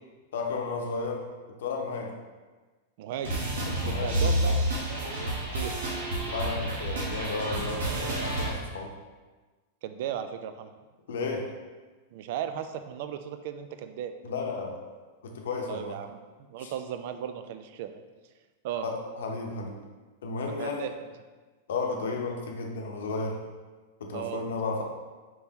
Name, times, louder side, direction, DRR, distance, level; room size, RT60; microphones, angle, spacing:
voice 1, 0.3-1.3 1.6-2.1 3.7-4.6 6.2-8.9 11.1-11.5 14.2-14.8 15.2-16.0 16.6-16.7 18.8-19.8 20.2-20.9 21.7-23.4 24.0-24.8, left 3 dB, 75° left, 1 dB, 0.7 m, -33 dB
voice 2, 3.0-3.4 3.9-5.8 9.8-10.7 12.1-14.1 15.7-16.2 16.5-18.0 18.6-18.9 20.6-20.9 24.1-24.4, right 10 dB, 60° right, 8 dB, 0.3 m, -36 dB
sound 1, 3.2-8.5, right 1 dB, 80° right, 1.1 m, -29 dB
4.5 x 3.5 x 2.8 m, 1.3 s
hypercardioid pair, 110°, 0 cm